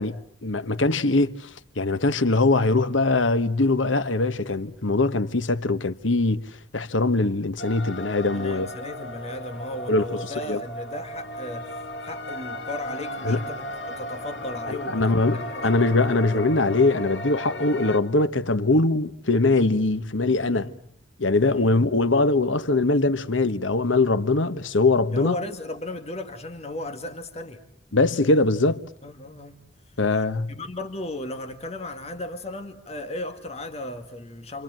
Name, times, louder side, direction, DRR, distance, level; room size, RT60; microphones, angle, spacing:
voice 1, 0.0-6.4 6.7-8.7 9.9-10.1 10.4-10.6 13.2-13.4 14.7-20.7 21.2-25.4 27.9-28.8 30.0-30.6, left 2 dB, 85° left, 1.3 m, -22 dB
sound 1, 7.6-18.0, equal, 65° left, 3.6 m, -35 dB
voice 2, 8.3-16.4 17.6-17.8 20.4-20.8 21.5-21.9 25.1-27.6 29.0-29.6 30.5-34.6, left 1 dB, 35° left, 2.0 m, -36 dB
29.5 x 25.5 x 7.6 m
head